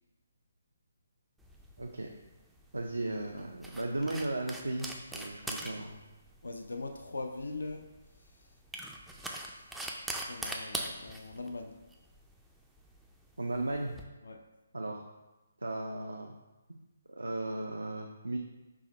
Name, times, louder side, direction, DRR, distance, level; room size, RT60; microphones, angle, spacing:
sound 1, 1.4-14.0, right 1 dB, 5° right, 0.3 m, -43 dB
voice 1, 1.8-2.1 2.7-6.0 13.4-14.0 14.7-15.0 15.6-16.3 17.1-18.4, right 2 dB, 90° right, 1 dB, 0.4 m, -36 dB
voice 2, 6.4-7.8 9.2-9.8 10.0-11.7 14.2-14.4, left 3 dB, 80° left, 4 dB, 0.4 m, -41 dB
4.7 x 2.0 x 4.0 m, 1.1 s
figure-of-eight pair, 145°, 0 cm